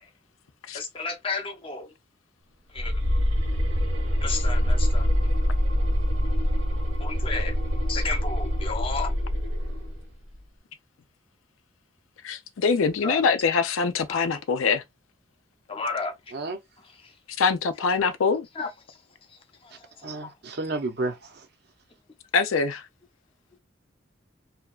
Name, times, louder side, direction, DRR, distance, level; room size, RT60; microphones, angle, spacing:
voice 1, 0.7-1.9 2.7-2.9 4.2-5.1 7.0-7.5 7.9-9.1 13.0-13.2 14.1-14.2 15.7-16.1 18.6-18.7 20.2-20.3, left 4 dB, 25° left, 0.5 m, -32 dB
sound 1, 2.8-10.0, equal, 80° right, 1.2 m, -25 dB
voice 2, 12.2-14.8 17.4-18.5 22.3-22.8, left 5 dB, 85° left, 0.5 m, -24 dB
voice 3, 20.0-21.3, right 3 dB, 50° right, 0.5 m, -31 dB
2.7 x 2.2 x 2.3 m
head